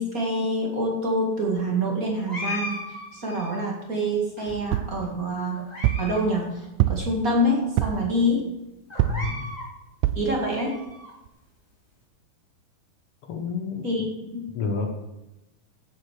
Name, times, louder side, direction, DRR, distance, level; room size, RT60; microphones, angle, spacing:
voice 1, 0.0-2.8 3.1-5.7 6.0-8.4 10.2-10.8 13.8-14.5, equal, 30° right, -1 dB, 1.8 m, -26 dB
sound 1, 2.3-3.7 4.4-5.0 5.5-6.2 6.5-6.6 7.3-7.4 7.8-7.9 8.9-9.7 10.2-11.1, left 1 dB, 15° left, 1.5 m, -37 dB
sound 2, 4.7-5.0 5.8-6.1 6.8-7.2 7.8-8.1 9.0-9.3 10.0-10.3 10.9-11.0 11.3-11.4, right 13 dB, 85° right, 1.9 m, -24 dB
voice 2, 9.0-9.5 13.3-13.8 14.5-14.9, left 5 dB, 85° left, 2 dB, 1.2 m, -29 dB
16.5 x 6.9 x 4.8 m, 0.95 s
omnidirectional pair, 4.4 m